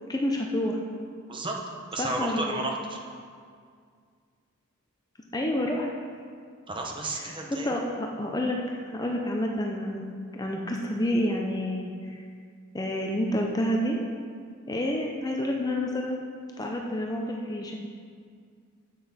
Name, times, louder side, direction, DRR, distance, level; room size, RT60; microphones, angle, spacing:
voice 1, 0.1-0.8 2.0-2.6 5.3-5.9 7.2-10.0 10.3-12.2 12.7-14.0 14.7-16.2 16.6-17.7, left 1 dB, 20° left, 0 dB, 0.6 m, -29 dB
voice 2, 1.3-1.6 1.9-3.0 6.7-7.7, right 2 dB, 25° right, 1 dB, 1.0 m, -32 dB
9.8 x 7.9 x 4.2 m, 2.1 s
head